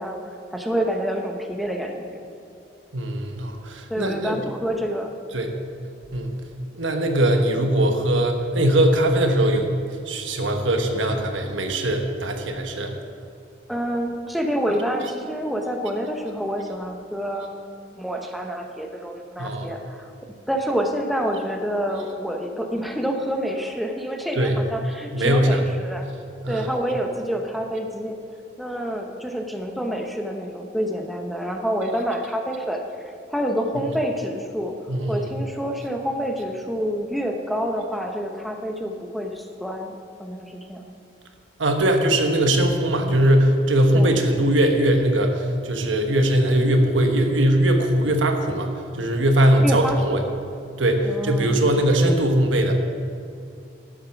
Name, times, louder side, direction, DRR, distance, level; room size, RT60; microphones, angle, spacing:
voice 1, 0.0-2.3 3.9-5.1 13.7-20.1 20.5-26.1 26.5-28.2 28.6-32.8 33.3-34.8 35.1-40.8 43.9-44.1 49.6-50.3 51.0-51.6, equal, ahead, 2 dB, 0.8 m, -28 dB
voice 2, 2.9-4.4 5.3-5.5 6.1-6.3 6.7-9.7 10.1-12.9 19.4-19.7 24.4-24.5 25.1-25.6 26.4-26.7 34.9-35.2 41.6-48.7 49.0-50.2 50.8-52.7, right 1 dB, 90° right, 4 dB, 1.3 m, -20 dB
11.0 x 9.0 x 5.9 m, 2.5 s
head